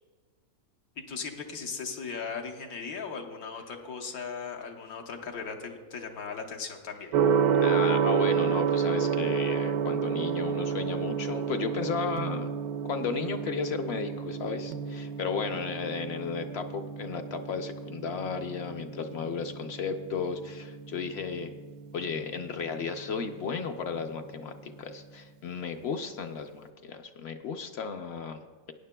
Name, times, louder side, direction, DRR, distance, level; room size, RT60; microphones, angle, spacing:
voice 1, 1.1-7.1, left 5 dB, 85° left, 2 dB, 1.4 m, -38 dB
Gong, 7.1-25.0, right 7 dB, 85° right, 1.0 m, -31 dB
voice 2, 7.6-12.5 12.8-21.5 21.9-28.7, left 5 dB, 65° left, 7 dB, 0.7 m, -34 dB
19.0 x 9.5 x 2.2 m, 1.5 s
omnidirectional pair, 1.5 m